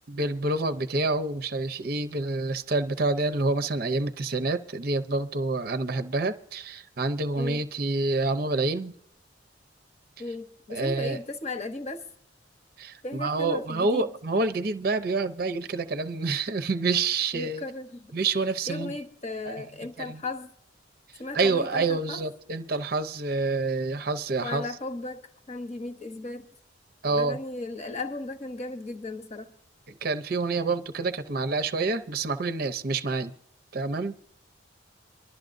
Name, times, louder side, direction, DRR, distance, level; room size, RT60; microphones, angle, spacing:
voice 1, 0.1-8.9 10.7-11.2 12.8-17.6 18.1-18.9 19.5-19.6 20.0-20.2 21.3-24.6 27.0-27.4 30.0-33.3 33.7-34.1, right 3 dB, 50° right, 0.6 m, -27 dB
voice 2, 10.2-12.0 13.0-14.1 17.3-18.1 18.7-20.5 21.2-22.2 24.4-26.5 27.1-29.5, left 2 dB, 35° left, 0.9 m, -36 dB
24.5 x 12.0 x 2.6 m
head